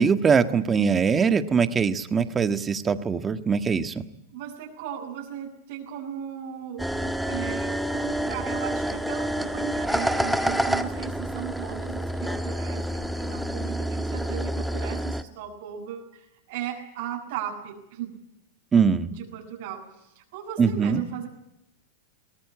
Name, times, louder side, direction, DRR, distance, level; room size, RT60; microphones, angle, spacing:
voice 1, 0.0-3.9 18.7-19.1 20.6-21.0, right 6 dB, 20° right, 9 dB, 1.5 m, -22 dB
voice 2, 4.3-18.1 19.1-21.3, right 9 dB, 65° right, -1 dB, 5.8 m, -37 dB
sound 1, 6.8-15.2, equal, ahead, 1.4 m, -28 dB
22.5 x 18.0 x 8.7 m, 0.84 s
hypercardioid pair, 120°, 0 cm